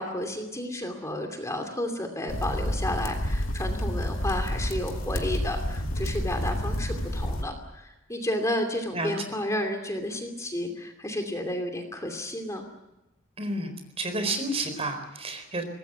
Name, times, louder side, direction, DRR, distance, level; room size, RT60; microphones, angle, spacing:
voice 1, 0.0-12.6, left 1 dB, 15° left, 4 dB, 2.7 m, -32 dB
sound 1, 2.3-7.4, equal, 75° left, 2.6 m, -29 dB
voice 2, 13.4-13.7 14.0-15.6, right 2 dB, 30° right, 7 dB, 4.2 m, -30 dB
24.0 x 20.0 x 8.1 m, 0.98 s
head